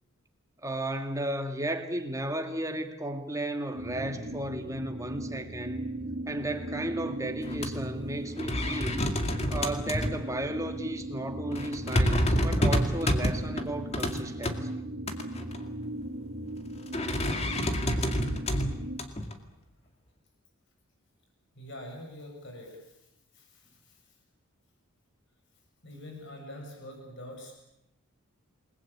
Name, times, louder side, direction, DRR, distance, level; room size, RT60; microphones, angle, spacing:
voice 1, 0.6-5.8 6.3-9.1 9.5-14.8, right 1 dB, 15° right, 2.2 m, -34 dB
sound 1, 3.7-19.0, right 1 dB, 50° right, 2.9 m, -38 dB
sound 2, 7.4-7.7 8.0-8.1 8.4-10.2 10.7-10.8 11.5-14.5 15.1-15.6 16.9-19.3, equal, 30° left, 2.2 m, -28 dB
voice 2, 21.5-24.2 25.8-27.6, left 1 dB, 55° left, 7.6 m, -45 dB
28.5 x 20.5 x 8.8 m
head